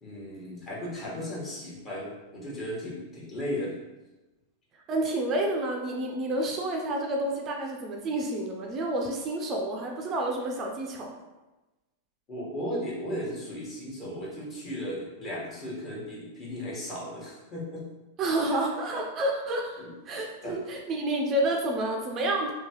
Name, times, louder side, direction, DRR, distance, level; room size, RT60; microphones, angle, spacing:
voice 1, 0.0-3.7 12.3-17.8 18.4-18.6 19.8-19.9 20.4-20.5, equal, 30° left, -5 dB, 1.2 m, -36 dB
voice 2, 4.9-11.2 18.2-22.5, right 1 dB, 35° right, 1 dB, 0.4 m, -29 dB
2.9 x 2.2 x 2.9 m, 1.1 s
hypercardioid pair, 110°, 0 cm